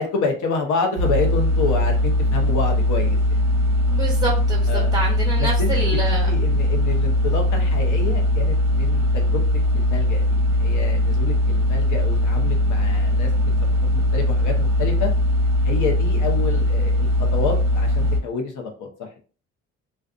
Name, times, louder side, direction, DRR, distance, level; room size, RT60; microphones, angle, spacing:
voice 1, 0.0-3.4 4.7-4.9 5.4-9.4 9.7-13.5 13.9-15.1 15.6-19.2, left 4 dB, 80° left, 3 dB, 0.8 m, -28 dB
sound 1, 1.0-18.2, left 1 dB, 60° right, 0.6 m, -20 dB
voice 2, 3.9-6.3, right 2 dB, 10° right, -2 dB, 1.0 m, -27 dB
2.4 x 2.4 x 2.4 m, 0.37 s
cardioid pair, 90°, 30 cm